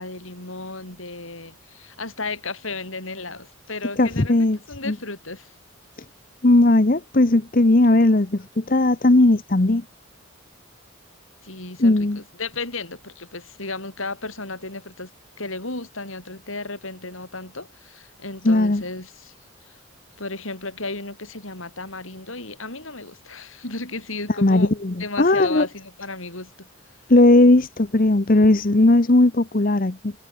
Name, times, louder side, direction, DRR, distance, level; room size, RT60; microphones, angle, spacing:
voice 1, 0.0-5.5 11.4-15.1 15.4-19.3 19.7-19.8 20.2-24.7 25.0-26.7, left 3 dB, 75° left, 7.1 m, -34 dB
voice 2, 4.0-4.6 4.9-5.0 6.4-9.8 11.8-12.2 18.4-18.8 24.4-25.7 27.1-30.1, left 2 dB, 40° left, 0.9 m, -17 dB
head